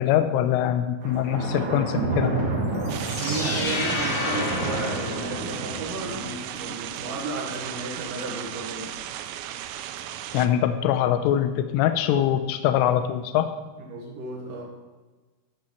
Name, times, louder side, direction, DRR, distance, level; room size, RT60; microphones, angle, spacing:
voice 1, 0.0-2.4 10.3-13.5, left 10 dB, 80° left, 9 dB, 3.0 m, -23 dB
Thunder, 1.0-6.3, right 3 dB, 45° right, 2.7 m, -30 dB
sound 1, 2.8-5.9, left 3 dB, 65° left, 3.3 m, -31 dB
voice 2, 2.8-8.9 13.9-14.6, right 3 dB, 65° right, -3 dB, 2.2 m, -34 dB
sound 2, 2.9-10.5, right 11 dB, 90° right, 3.4 m, -36 dB
12.5 x 6.0 x 4.4 m, 1.3 s
omnidirectional pair, 5.9 m